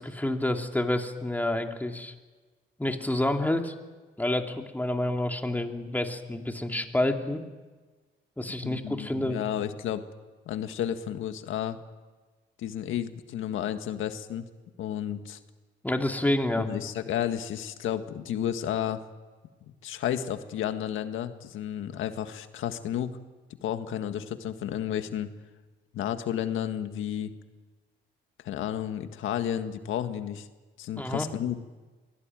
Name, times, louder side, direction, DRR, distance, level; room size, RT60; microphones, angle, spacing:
voice 1, 0.0-2.1 2.8-3.7 4.2-7.4 8.4-9.4 15.8-16.7 31.0-31.3, left 1 dB, 10° left, 4 dB, 2.5 m, -28 dB
voice 2, 8.6-10.0 10.5-11.8 12.6-14.4 14.8-15.4 16.6-19.0 19.8-23.2 23.6-25.3 25.9-27.3 28.4-30.5 30.8-31.6, left 10 dB, 80° left, 8 dB, 1.8 m, -32 dB
23.5 x 18.0 x 9.2 m, 1.3 s
cardioid pair, 90°, 20 cm